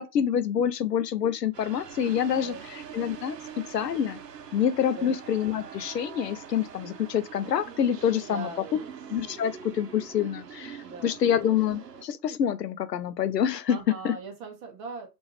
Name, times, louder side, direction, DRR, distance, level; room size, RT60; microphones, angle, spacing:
voice 1, 0.0-3.4 3.7-4.2 4.5-8.5 9.1-13.8 14.0-14.1, left 9 dB, 80° left, 0.6 m, -27 dB
sound 1, 1.5-12.1, right 7 dB, 75° right, 0.7 m, -44 dB
voice 2, 2.3-2.7 4.9-5.2 8.3-8.9 10.8-11.2 13.7-15.1, right 4 dB, 20° right, 0.7 m, -40 dB
3.4 x 2.5 x 3.0 m
figure-of-eight pair, 120°, 49 cm